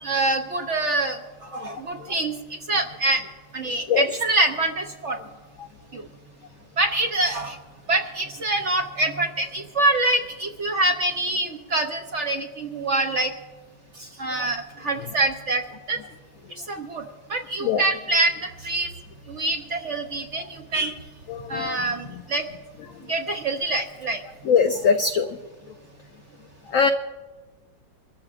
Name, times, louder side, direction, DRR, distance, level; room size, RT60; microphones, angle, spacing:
voice 1, 0.0-2.4 2.7-3.2 3.5-5.2 5.9-6.0 6.8-7.6 7.9-13.3 14.0-15.6 15.9-16.0 16.7-18.9 19.3-21.0 21.5-22.5 23.1-24.2, right 2 dB, 60° right, 4 dB, 0.8 m, -25 dB
voice 2, 21.3-21.8 24.5-25.3 26.7-26.9, left 6 dB, 80° left, 7 dB, 0.7 m, -21 dB
26.0 x 13.5 x 2.5 m, 1.3 s
omnidirectional pair, 2.0 m